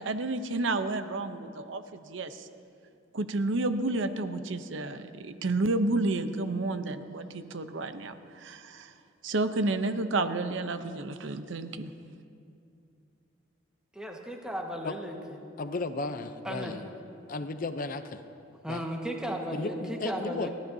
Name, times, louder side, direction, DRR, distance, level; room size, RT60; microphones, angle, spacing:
voice 1, 0.0-2.5 3.1-8.9 9.2-11.9, right 2 dB, 80° right, 9 dB, 0.7 m, -31 dB
voice 2, 13.9-15.4 16.4-16.7 18.6-20.5, equal, 5° right, 0 dB, 1.4 m, -35 dB
voice 3, 15.6-16.8 17.3-18.2 18.7-18.8 19.5-20.5, left 3 dB, 45° left, 9 dB, 0.6 m, -34 dB
30.0 x 12.5 x 2.7 m, 2.5 s
head